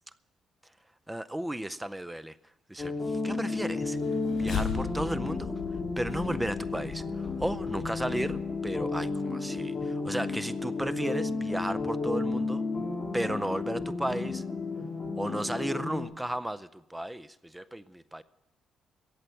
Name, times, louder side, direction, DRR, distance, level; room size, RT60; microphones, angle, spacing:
voice 1, 1.1-2.4 2.7-4.0 4.4-5.5 6.0-12.6 13.1-14.4 15.2-18.2, right 1 dB, 10° right, 0.5 m, -34 dB
sound 1, 2.8-16.0, left 3 dB, 20° left, 3.1 m, -32 dB
sound 2, 3.8-9.2, left 7 dB, 60° left, 4.1 m, -39 dB
14.5 x 8.3 x 9.0 m
cardioid pair, 90°, 0 cm